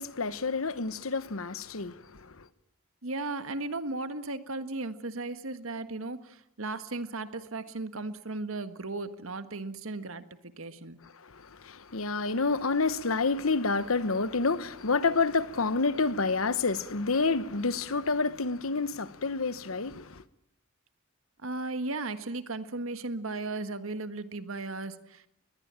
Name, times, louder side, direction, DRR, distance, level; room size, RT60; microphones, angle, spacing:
voice 1, 0.0-2.5 11.2-20.2, left 4 dB, 80° left, 1.1 m, -29 dB
voice 2, 3.0-11.0 21.4-25.3, right 2 dB, 75° right, 1.6 m, -36 dB
22.0 x 20.0 x 8.9 m
head